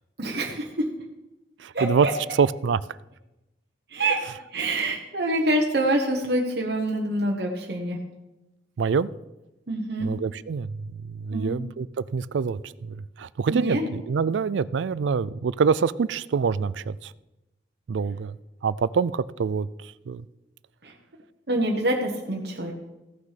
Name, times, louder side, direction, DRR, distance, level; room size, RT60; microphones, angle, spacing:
voice 1, 0.2-0.8 1.7-2.1 3.9-4.2 4.5-8.0 9.7-10.1 11.3-11.6 13.5-13.9 20.8-20.9 21.5-22.7, right 1 dB, 60° right, 0 dB, 1.3 m, -26 dB
voice 2, 1.6-2.1 2.4-2.8 8.8-9.1 10.0-11.9 12.1-17.1 17.9-18.4 18.6-20.2, right 5 dB, 80° right, 19 dB, 0.4 m, -25 dB
15.5 x 6.1 x 5.8 m, 0.99 s
head